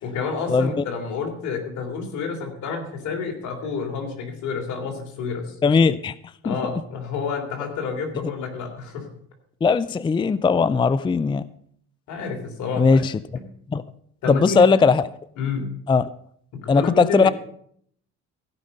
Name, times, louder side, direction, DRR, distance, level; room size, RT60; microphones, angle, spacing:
voice 1, 0.0-5.6 6.4-9.1 12.1-13.0 13.3-13.4 14.2-14.8 15.4-15.7 16.5-17.3, left 4 dB, 75° left, 3 dB, 3.3 m, -29 dB
voice 2, 5.6-6.1 6.5-6.6 9.6-11.4 12.8-13.1 13.7-13.8 14.3-15.0 15.9-16.1 16.7-17.3, left 5 dB, 15° left, 17 dB, 0.4 m, -18 dB
16.0 x 5.6 x 6.5 m, 0.65 s
cardioid pair, 90°, 30 cm